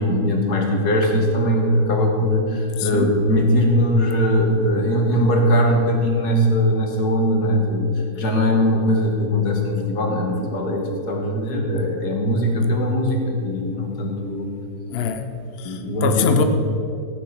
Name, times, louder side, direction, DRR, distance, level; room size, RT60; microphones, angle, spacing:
voice 1, 0.0-14.5 15.6-16.4, equal, 75° left, 1 dB, 2.3 m, -20 dB
voice 2, 2.8-3.1 14.9-16.4, left 7 dB, 50° left, 7 dB, 0.8 m, -24 dB
15.0 x 9.0 x 5.7 m, 2.7 s
omnidirectional pair, 1.7 m